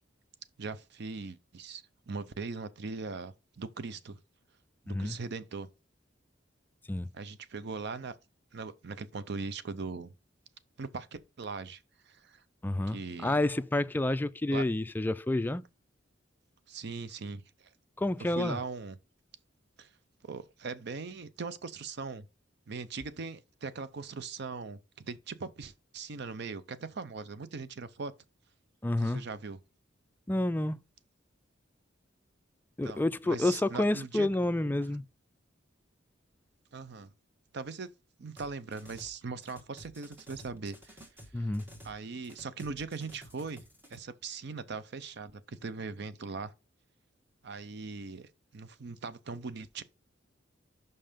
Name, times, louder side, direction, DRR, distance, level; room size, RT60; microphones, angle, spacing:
voice 1, 0.6-4.2 4.9-5.7 7.1-8.2 8.5-10.1 10.8-12.4 12.9-13.4 14.5-14.6 16.7-17.4 18.2-19.0 19.8-19.9 20.2-22.3 22.7-28.1 29.0-29.6 32.8-34.3 36.7-37.1 37.5-37.9 38.2-41.0 41.4-41.5 41.8-43.6 43.9-46.5 47.4-49.8, right 4 dB, 60° right, 0.6 m, -40 dB
voice 2, 4.9-5.2 6.9-7.1 12.6-15.6 18.0-18.6 28.8-29.2 30.3-30.8 32.8-35.0 41.3-41.7, left 1 dB, 10° left, 0.3 m, -29 dB
sound 1, 38.4-39.2 39.4-42.0 42.2-44.0, equal, 10° right, 1.4 m, -52 dB
5.5 x 5.5 x 5.1 m
head